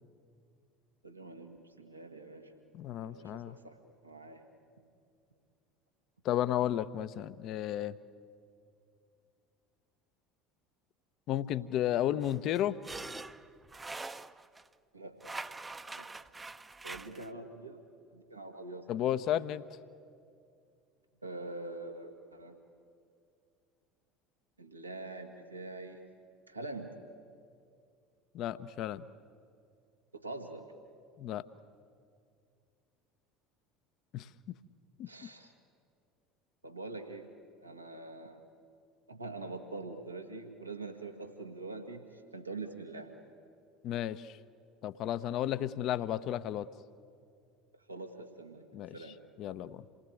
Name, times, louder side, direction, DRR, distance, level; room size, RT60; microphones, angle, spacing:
voice 1, 1.0-2.5 2.9-3.8 4.0-4.4 14.9-15.2 15.9-16.1 16.8-17.8 18.1-18.9 21.2-22.6 24.6-26.1 26.5-26.9 30.1-30.7 35.1-35.5 36.6-37.3 37.6-38.4 39.1-43.1 47.9-48.6 48.9-49.2, right 2 dB, 85° right, 4 dB, 1.8 m, -44 dB
voice 2, 2.7-3.6 6.2-7.9 11.3-12.8 18.9-19.6 28.3-29.0 31.2-31.4 34.1-34.3 35.0-35.1 43.8-44.3 44.8-46.7 48.7-48.9 49.4-49.8, left 11 dB, 50° left, 14 dB, 0.8 m, -33 dB
sound 1, 12.2-14.7 15.2-17.3, right 3 dB, 15° right, 0.8 m, -44 dB
28.0 x 19.0 x 9.1 m, 2.4 s
figure-of-eight pair, 65°, 0 cm